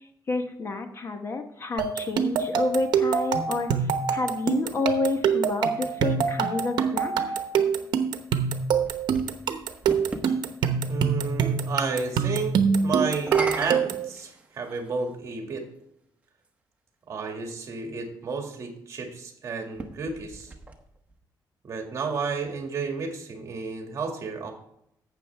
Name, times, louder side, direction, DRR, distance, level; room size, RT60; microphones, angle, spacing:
voice 1, 0.3-7.4, left 3 dB, 35° left, 6 dB, 1.1 m, -29 dB
sound 1, 1.8-14.1, right 6 dB, 80° right, 0.9 m, -25 dB
sound 2, 8.7-10.3 13.1-14.9 15.8-15.9 19.6-21.2, right 2 dB, 20° right, 1.1 m, -36 dB
voice 2, 10.9-12.6 12.8-15.6 17.1-20.5 21.6-24.5, right 4 dB, 40° right, 3 dB, 2.1 m, -32 dB
12.0 x 8.3 x 3.4 m, 0.75 s
cardioid pair, 145°, 7 cm